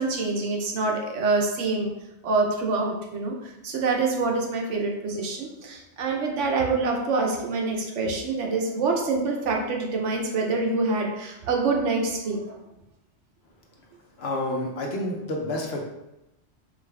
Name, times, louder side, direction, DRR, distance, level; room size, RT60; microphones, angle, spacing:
voice 1, 0.0-1.9 2.2-12.6, right 3 dB, 85° right, 0 dB, 1.1 m, -26 dB
voice 2, 14.2-15.8, left 1 dB, 65° left, 0 dB, 1.0 m, -29 dB
4.9 x 2.5 x 3.3 m, 0.92 s
omnidirectional pair, 1.2 m